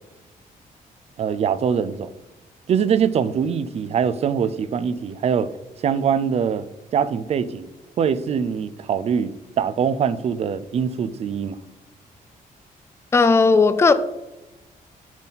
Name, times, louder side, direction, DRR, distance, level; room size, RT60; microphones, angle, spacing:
voice 1, 1.2-2.1 2.7-5.5 5.8-6.7 6.9-7.7 8.0-11.6, right 7 dB, 45° right, 0.5 m, -23 dB
voice 2, 13.1-13.9, left 4 dB, 15° left, 0.4 m, -15 dB
10.5 x 5.7 x 4.1 m
wide cardioid pair, 170°, 15 cm